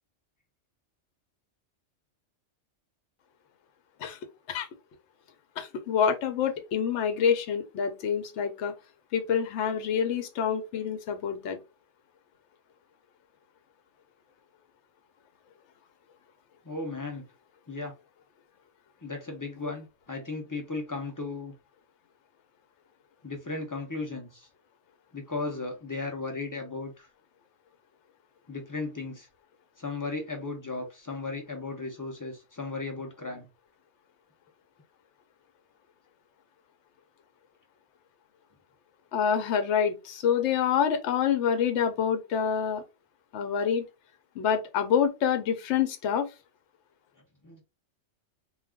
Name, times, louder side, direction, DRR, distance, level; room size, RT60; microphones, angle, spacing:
voice 1, 5.6-8.7 9.1-11.6 39.1-42.8 43.3-43.8 44.4-46.3, left 7 dB, 70° left, 0.9 m, -27 dB
voice 2, 16.6-17.3 17.7-17.9 19.0-21.5 23.2-24.5 25.1-27.1 28.5-29.3 29.8-33.5 47.4-47.6, left 3 dB, 25° left, 0.4 m, -35 dB
2.4 x 2.3 x 3.4 m
omnidirectional pair, 1.3 m